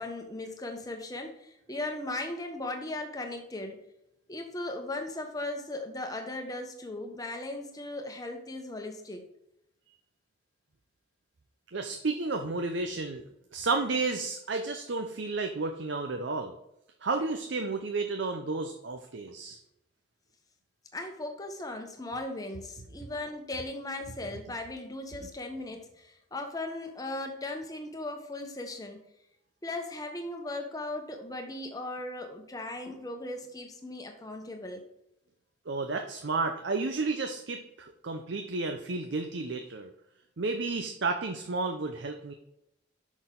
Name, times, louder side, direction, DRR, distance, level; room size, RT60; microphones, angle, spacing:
voice 1, 0.0-3.8 4.3-9.2 20.9-29.0 29.6-34.8, left 2 dB, 20° left, 4 dB, 1.0 m, -37 dB
voice 2, 11.7-13.2 13.5-16.6 17.0-19.6 35.7-39.9 40.4-42.3, right 3 dB, 70° right, 5 dB, 0.7 m, -32 dB
6.3 x 6.1 x 3.8 m, 0.83 s
head